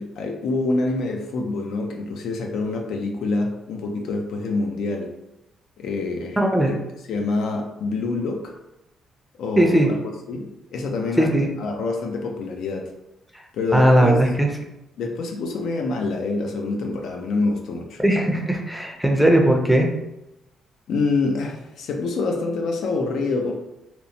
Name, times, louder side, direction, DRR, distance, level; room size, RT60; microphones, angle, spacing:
voice 1, 0.0-5.1 5.8-6.4 7.1-8.5 9.4-9.9 10.3-11.3 11.6-12.9 13.5-14.1 15.0-18.0 20.9-23.5, left 3 dB, 75° left, 2 dB, 0.4 m, -26 dB
voice 2, 6.4-6.8 9.6-9.9 11.2-11.5 13.7-14.5 18.0-19.9, right 1 dB, ahead, 1 dB, 0.5 m, -18 dB
2.9 x 2.0 x 2.6 m, 0.91 s
cardioid pair, 90°, 0 cm